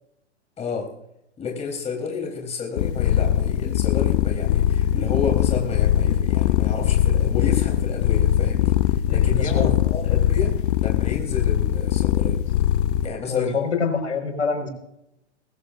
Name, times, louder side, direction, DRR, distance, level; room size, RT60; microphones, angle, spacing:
voice 1, 0.6-0.9 1.4-10.5 10.8-12.4 13.0-13.6, left 5 dB, 20° left, 0 dB, 3.9 m, -31 dB
sound 1, 2.8-13.1, left 11 dB, 45° left, 0.7 m, -21 dB
voice 2, 9.1-9.7 13.3-14.7, left 5 dB, 85° left, 4 dB, 5.5 m, -26 dB
21.0 x 15.5 x 2.6 m, 0.80 s
hypercardioid pair, 115°, 35 cm